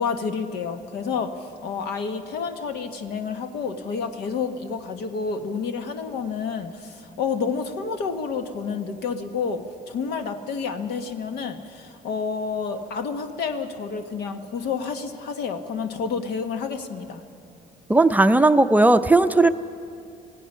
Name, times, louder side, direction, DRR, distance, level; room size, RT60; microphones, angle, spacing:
voice 1, 0.0-17.2, left 5 dB, 75° left, 6 dB, 1.4 m, -29 dB
voice 2, 17.9-19.5, right 2 dB, 10° right, 9 dB, 0.5 m, -16 dB
26.5 x 17.5 x 5.6 m, 2.5 s
cardioid pair, 110°, 17 cm